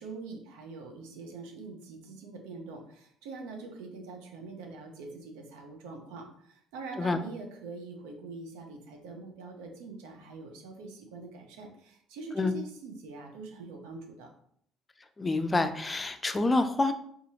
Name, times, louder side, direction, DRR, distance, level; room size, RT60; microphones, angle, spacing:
voice 1, 0.0-14.3, right 3 dB, 80° right, 3 dB, 0.5 m, -44 dB
voice 2, 15.2-16.9, left 2 dB, 25° left, 9 dB, 0.3 m, -27 dB
2.6 x 2.4 x 2.8 m, 0.67 s
hypercardioid pair, 60°, 0 cm